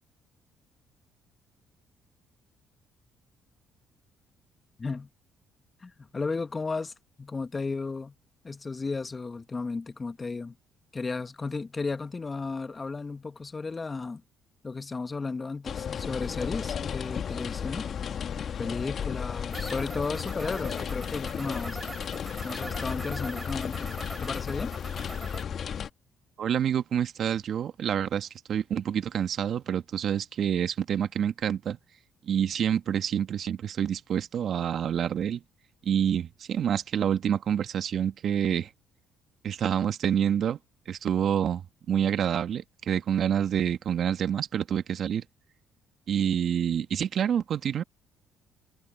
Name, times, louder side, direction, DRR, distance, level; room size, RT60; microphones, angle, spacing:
voice 1, 5.8-6.9 7.2-8.1 8.4-10.6 10.9-14.2 14.6-17.9 18.6-21.8 22.4-23.9 24.2-24.8, left 4 dB, 30° left, 1.6 m, -34 dB
sound 1, 15.6-25.9, left 8 dB, 55° left, 1.7 m, -34 dB
sound 2, 19.5-25.4, right 2 dB, 20° right, 4.1 m, -43 dB
voice 2, 26.4-31.8 32.3-35.4 35.9-38.7 39.4-40.6 40.9-41.6 41.9-45.2 46.1-47.8, right 9 dB, 60° right, 1.9 m, -27 dB
supercardioid pair, 60°, 0 cm